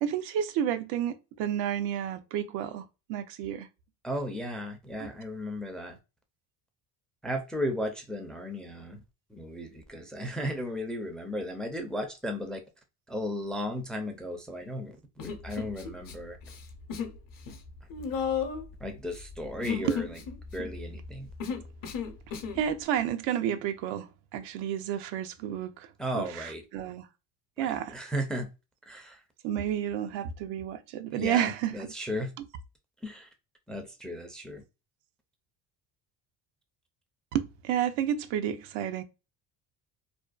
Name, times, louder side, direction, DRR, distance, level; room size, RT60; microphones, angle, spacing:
voice 1, 0.0-2.8 3.1-3.7 5.0-5.1 19.8-20.0 22.6-25.9 26.1-27.1 27.6-28.0 29.4-31.9 32.4-32.5 37.3-39.0, right 10 dB, 85° right, 0.5 m, -31 dB
voice 2, 4.0-6.0 7.2-9.0 9.3-12.6 13.1-16.4 18.0-18.2 18.8-20.1 20.5-21.3 26.0-26.6 27.6-28.5 28.9-29.2 31.1-32.3 33.0-33.3 33.7-34.6, equal, ahead, 0.4 m, -35 dB
Human voice, 15.2-16.1 16.4-17.2 17.4-22.6, left 6 dB, 50° left, 0.7 m, -35 dB
2.6 x 2.1 x 2.3 m
supercardioid pair, 95°, 43 cm